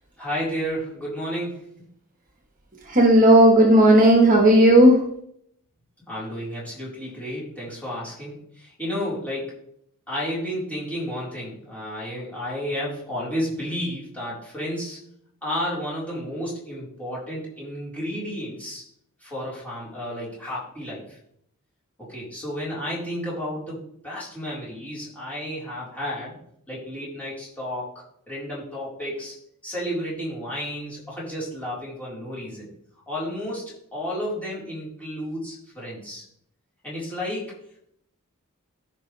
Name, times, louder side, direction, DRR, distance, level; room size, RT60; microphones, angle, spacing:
voice 1, 0.2-1.9 6.0-9.7 10.1-15.0 15.4-18.8 19.2-21.2 22.0-26.4 26.7-27.9 28.3-29.4 29.6-32.7 33.1-36.2 36.8-37.8, equal, 5° left, -7 dB, 4.2 m, -32 dB
voice 2, 2.9-5.0, right 1 dB, 40° right, 1 dB, 1.4 m, -14 dB
14.0 x 5.6 x 3.3 m, 0.70 s
head